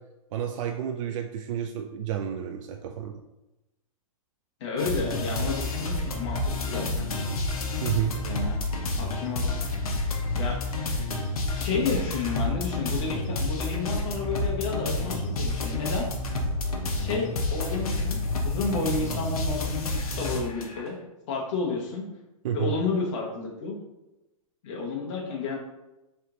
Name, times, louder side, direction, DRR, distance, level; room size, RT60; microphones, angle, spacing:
voice 1, 0.3-3.2 7.8-8.1 22.4-22.7, right 10 dB, 60° right, 3 dB, 0.4 m, -30 dB
voice 2, 4.6-7.1 8.2-8.6 8.9-9.8 10.4-11.0 11.6-16.1 16.9-18.2 18.4-21.0 21.3-22.1 22.5-23.8 24.6-25.5, left 4 dB, 55° left, -2 dB, 1.0 m, -31 dB
sound 1, 4.8-20.9, left 2 dB, 90° left, 0.8 m, -29 dB
3.2 x 3.0 x 3.8 m, 0.96 s
hypercardioid pair, 135°, 18 cm